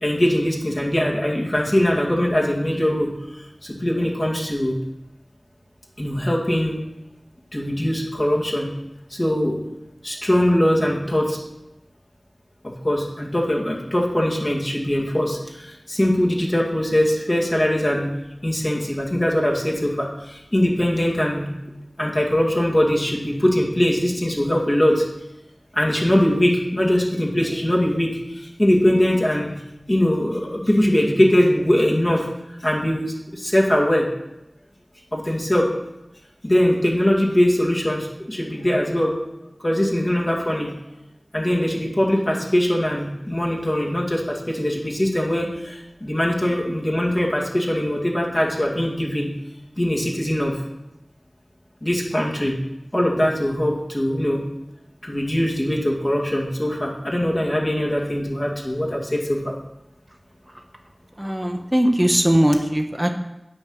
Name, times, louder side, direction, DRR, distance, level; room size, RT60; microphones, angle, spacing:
voice 1, 0.0-4.7 6.0-6.8 7.5-8.7 9.1-9.6 10.0-11.4 12.8-18.1 18.4-21.5 22.0-25.0 25.7-29.5 29.9-32.3 32.6-34.1 35.1-35.7 36.4-39.1 39.6-40.7 41.3-49.3 49.8-50.6 51.8-52.5 52.9-54.4 55.0-59.5, left 1 dB, 40° left, -2 dB, 2.0 m, -21 dB
voice 2, 61.2-63.1, equal, 15° right, 4 dB, 1.0 m, -19 dB
8.8 x 5.5 x 6.4 m, 0.91 s
wide cardioid pair, 45°, 0 cm